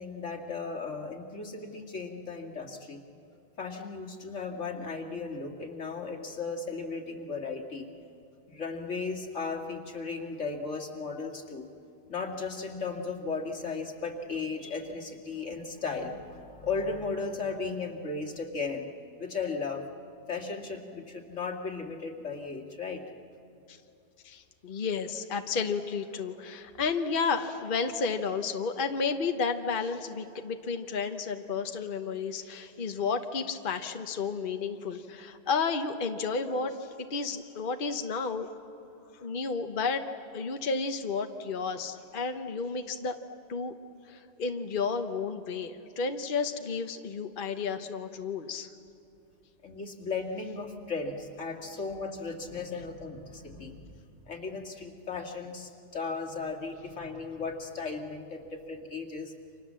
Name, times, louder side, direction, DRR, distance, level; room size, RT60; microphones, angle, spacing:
voice 1, 0.0-3.0 3.6-7.9 8.5-11.7 12.1-18.9 19.2-19.8 20.3-23.0 49.6-53.8 54.3-59.3, left 4 dB, 80° left, 1 dB, 2.6 m, -36 dB
voice 2, 24.2-38.5 39.2-40.0 40.3-43.1 43.5-43.7 44.1-48.7, left 5 dB, 45° left, 6 dB, 1.1 m, -32 dB
29.5 x 26.0 x 7.5 m, 2.7 s
omnidirectional pair, 1.3 m